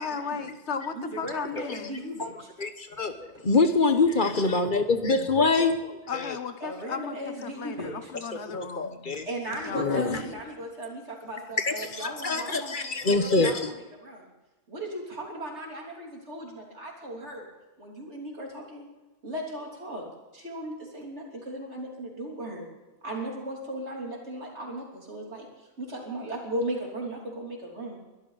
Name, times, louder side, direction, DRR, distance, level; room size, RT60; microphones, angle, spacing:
voice 1, 0.0-2.0 6.1-7.2 7.4-9.0 9.5-10.4, left 6 dB, 75° left, 10 dB, 1.4 m, -36 dB
voice 2, 0.9-2.5 6.6-8.1 9.3-13.5 14.0-14.3 14.7-17.5 17.8-18.8 19.2-20.1 20.3-22.7 23.0-25.5 25.8-28.0, right 1 dB, 75° right, -1 dB, 3.8 m, -37 dB
voice 3, 2.6-6.4 8.5-9.3 9.7-10.2 11.6-13.7, left 3 dB, 45° left, 8 dB, 1.3 m, -25 dB
22.5 x 13.0 x 4.1 m, 1.1 s
omnidirectional pair, 1.2 m